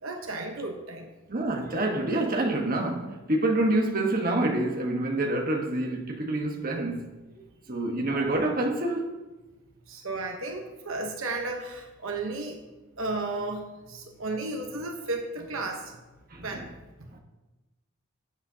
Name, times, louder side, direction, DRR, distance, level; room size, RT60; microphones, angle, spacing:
voice 1, 0.0-1.1 9.9-12.6 13.0-16.0 16.4-16.7 17.0-17.1, right 2 dB, 70° right, 1.1 m, -34 dB
voice 2, 1.3-7.4 7.7-9.2 16.3-16.7 17.1-17.2, right 2 dB, 40° right, 1.3 m, -27 dB
18.5 x 8.0 x 2.8 m
head